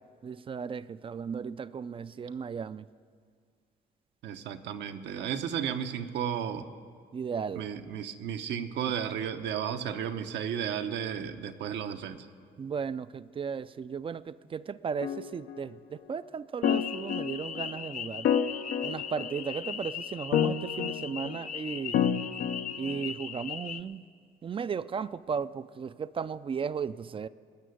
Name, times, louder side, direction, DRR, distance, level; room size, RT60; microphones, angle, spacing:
voice 1, 0.2-2.9 7.1-7.7 8.8-8.9 12.6-18.3 18.8-22.1 22.8-24.0 24.4-27.3, right 6 dB, 30° right, 15 dB, 0.3 m, -35 dB
voice 2, 4.2-6.7 7.6-12.3, right 8 dB, 75° right, 7 dB, 0.8 m, -33 dB
sound 1, 15.0-15.6 16.6-17.7 18.2-19.6 20.3-21.4 21.9-23.0, left 8 dB, 85° left, 0.7 m, -30 dB
sound 2, 16.6-23.8, left 8 dB, 45° left, 0.6 m, -39 dB
19.5 x 6.7 x 9.4 m, 2.1 s
cardioid pair, 100°, 18 cm